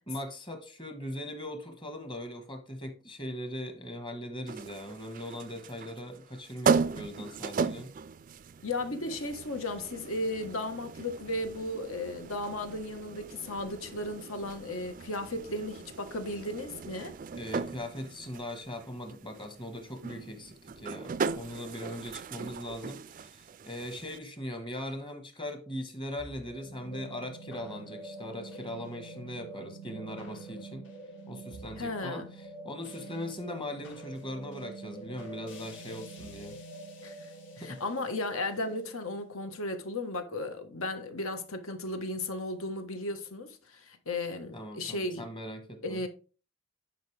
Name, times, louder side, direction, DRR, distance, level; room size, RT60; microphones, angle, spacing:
voice 1, 0.1-7.9 17.3-30.8 31.3-32.2 32.6-36.6 37.6-37.8 44.5-46.0, left 1 dB, 20° left, 1.4 m, -40 dB
sound 1, 4.5-24.2, right 5 dB, 40° right, 0.3 m, -37 dB
voice 2, 8.6-17.2 31.8-32.3 37.0-37.3 37.6-45.3 45.8-46.1, left 2 dB, 75° left, 1.4 m, -35 dB
sound 2, 26.2-40.6, right 2 dB, 60° left, 3.2 m, -46 dB
10.5 x 5.3 x 3.4 m
head